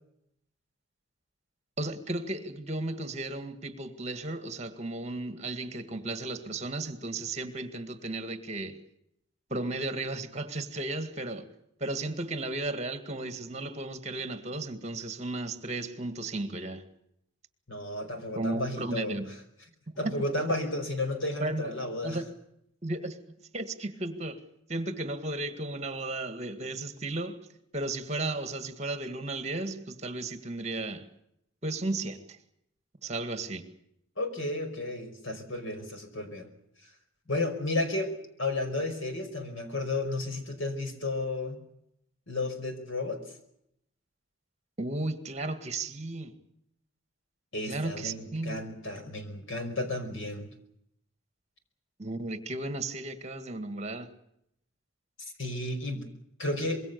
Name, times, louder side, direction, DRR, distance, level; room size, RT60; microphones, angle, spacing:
voice 1, 1.8-8.8 9.5-11.5 11.8-16.8 18.4-19.3 19.9-20.1 20.5-20.6 21.4-21.7 22.0-22.3 22.8-23.2 23.5-24.4 24.7-27.5 27.7-31.1 31.6-32.4 33.0-33.7 44.8-46.3 47.6-48.7 52.0-54.1, right 2 dB, 35° right, 2.0 m, -34 dB
voice 2, 17.7-19.2 20.0-22.2 34.2-36.5 36.8-36.9 37.3-38.1 38.4-41.6 42.3-43.2 47.5-50.5 55.2-56.1 56.4-56.8, left 2 dB, 70° left, 5.3 m, -33 dB
25.5 x 22.0 x 6.9 m
head